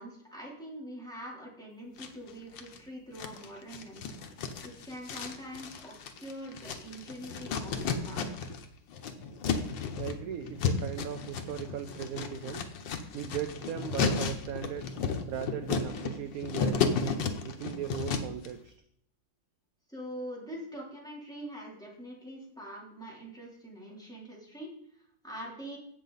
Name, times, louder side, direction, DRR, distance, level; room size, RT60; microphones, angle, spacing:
voice 1, 0.0-4.2 4.6-8.5 19.9-25.8, equal, ahead, -4 dB, 3.3 m, -44 dB
sound 1, 2.0-2.8 3.2-8.6 8.9-18.5, left 5 dB, 90° left, 1.7 m, -33 dB
voice 2, 10.0-12.7 13.1-14.9 15.3-18.7, right 9 dB, 65° right, 9 dB, 1.0 m, -38 dB
16.0 x 6.5 x 4.1 m, 0.68 s
omnidirectional pair, 1.9 m